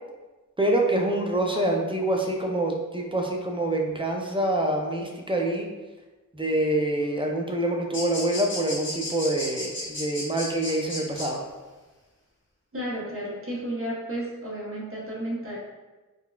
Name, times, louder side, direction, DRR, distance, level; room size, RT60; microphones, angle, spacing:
voice 1, 0.6-5.7 6.3-11.4, right 1 dB, 15° right, 1 dB, 0.4 m, -26 dB
sound 1, 7.9-11.3, left 1 dB, 35° left, 0.8 m, -33 dB
voice 2, 12.7-15.6, right 1 dB, 40° right, -5 dB, 0.9 m, -32 dB
3.8 x 2.1 x 2.3 m, 1.2 s
wide cardioid pair, 70°, 33 cm